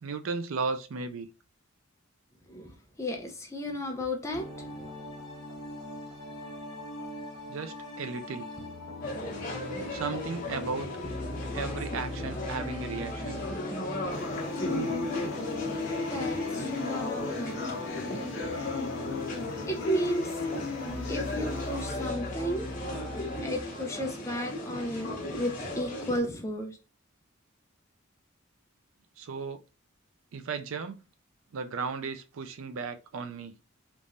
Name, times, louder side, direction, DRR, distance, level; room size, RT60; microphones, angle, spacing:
voice 1, 0.0-1.3 7.5-8.5 9.9-10.9 11.5-13.4 29.2-29.6 30.3-31.0 31.5-33.5, right 4 dB, 75° right, 0.4 m, -35 dB
voice 2, 3.0-4.5 16.1-18.0 19.7-20.3 21.1-22.7 23.4-26.8, equal, 15° left, 0.6 m, -33 dB
sound 1, 4.3-23.6, left 1 dB, 5° right, 1.6 m, -40 dB
sound 2, 9.0-26.2, left 1 dB, 40° left, 1.0 m, -37 dB
sound 3, 14.1-22.1, left 3 dB, 60° left, 0.7 m, -35 dB
3.5 x 2.9 x 2.6 m
head